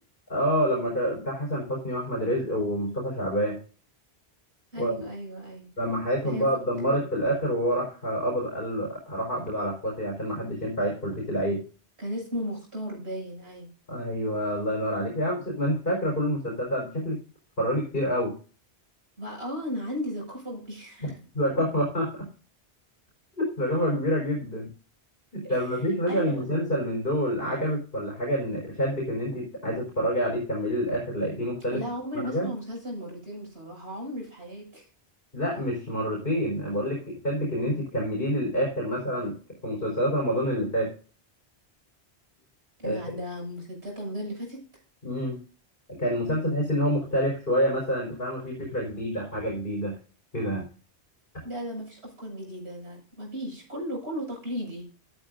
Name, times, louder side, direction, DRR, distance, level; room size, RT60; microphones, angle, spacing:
voice 1, 0.3-3.6 4.8-5.1 5.8-11.6 13.9-17.2 17.6-18.3 21.0-22.3 23.4-24.7 25.3-31.8 32.1-32.5 35.3-39.4 39.6-40.9 42.8-43.0 45.0-45.4 45.9-49.9 50.3-50.7, equal, 60° left, -2 dB, 4.7 m, -27 dB
voice 2, 4.7-5.7 6.2-6.5 12.0-13.7 19.2-21.2 25.4-26.4 31.7-34.9 42.8-44.6 51.4-54.9, equal, 85° right, -1 dB, 7.0 m, -35 dB
13.0 x 12.5 x 2.6 m, 0.37 s
omnidirectional pair, 1.1 m